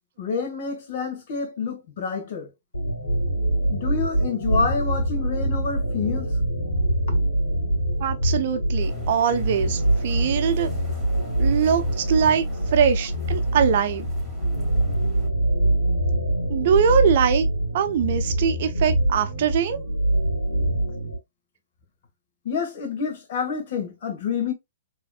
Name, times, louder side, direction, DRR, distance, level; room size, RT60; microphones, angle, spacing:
voice 1, 0.2-2.5 3.7-6.3 22.4-24.5, left 5 dB, 50° left, 1.5 m, -28 dB
sound 1, 2.7-21.2, right 1 dB, 80° left, 1.8 m, -24 dB
voice 2, 8.0-10.7 11.4-14.0 16.5-17.5 17.7-19.8, right 7 dB, 50° right, 0.6 m, -22 dB
sound 2, 8.8-15.3, right 2 dB, ahead, 2.4 m, -43 dB
4.2 x 3.1 x 2.4 m
figure-of-eight pair, 115°, 0 cm